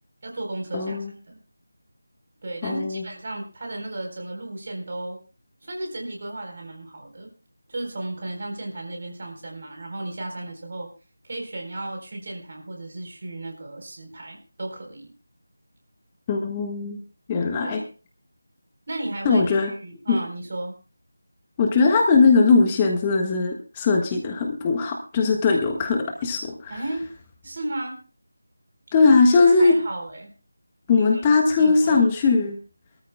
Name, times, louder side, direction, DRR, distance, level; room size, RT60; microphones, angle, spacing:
voice 1, 0.2-1.4 2.4-5.2 5.6-7.3 7.7-10.9 11.2-15.1 17.6-17.8 18.9-20.7 26.7-27.1 27.4-28.0 29.3-30.3 30.9-31.2 31.6-32.1, right 2 dB, 40° right, 3 dB, 4.0 m, -34 dB
voice 2, 0.7-1.1 2.6-3.1 16.3-17.0 17.3-17.8 19.2-19.7 20.1-20.2 21.6-26.8 28.9-29.8 30.9-32.6, left 4 dB, 15° left, 2 dB, 1.4 m, -19 dB
23.0 x 13.5 x 2.3 m, 0.34 s
figure-of-eight pair, 165°, 0 cm